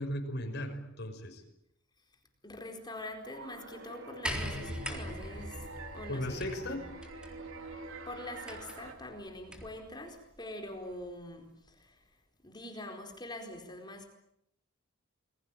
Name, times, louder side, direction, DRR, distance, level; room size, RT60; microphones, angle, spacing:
voice 1, 0.0-1.4 6.1-6.8, left 1 dB, 55° left, 4 dB, 6.0 m, -36 dB
voice 2, 2.4-5.7 5.9-6.9 8.0-12.0 12.4-14.1, left 1 dB, 20° left, 4 dB, 4.4 m, -44 dB
sound 1, 3.2-8.9, right 3 dB, 65° right, 3.7 m, -46 dB
sound 2, 4.2-9.8 10.9-11.0, equal, 5° right, 3.9 m, -42 dB
28.0 x 22.0 x 9.1 m, 0.77 s
head